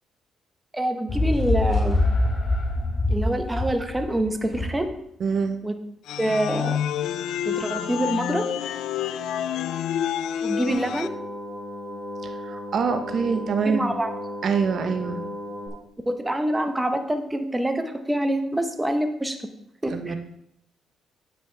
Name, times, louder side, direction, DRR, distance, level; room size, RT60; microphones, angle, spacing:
voice 1, 0.7-2.0 3.1-4.9 5.6-5.8 6.2-6.7 7.4-8.5 10.4-11.1 13.6-14.1 16.1-19.4 19.8-20.2, right 1 dB, 10° right, 6 dB, 1.0 m, -26 dB
sound 1, 1.1-4.9, left 2 dB, 40° left, 2.2 m, -24 dB
voice 2, 5.2-5.6 12.2-14.0 14.4-15.2 19.9-20.2, right 5 dB, 60° right, 7 dB, 0.8 m, -25 dB
sound 2, 6.1-11.1, left 9 dB, 85° left, 0.4 m, -28 dB
sound 3, 10.7-15.7, left 1 dB, 5° left, 3.4 m, -35 dB
9.2 x 9.1 x 3.4 m, 0.75 s
cardioid pair, 90°, 0 cm